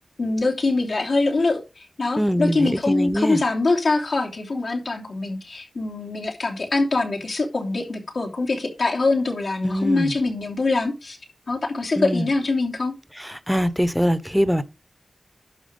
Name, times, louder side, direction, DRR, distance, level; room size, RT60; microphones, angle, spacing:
voice 1, 0.2-11.2 11.5-12.9, left 3 dB, 85° left, 3.1 m, -23 dB
voice 2, 2.2-3.4 9.6-10.1 12.0-12.3 13.5-14.6, equal, ahead, 0.9 m, -22 dB
11.5 x 4.8 x 5.4 m
wide cardioid pair, 65°, 0 cm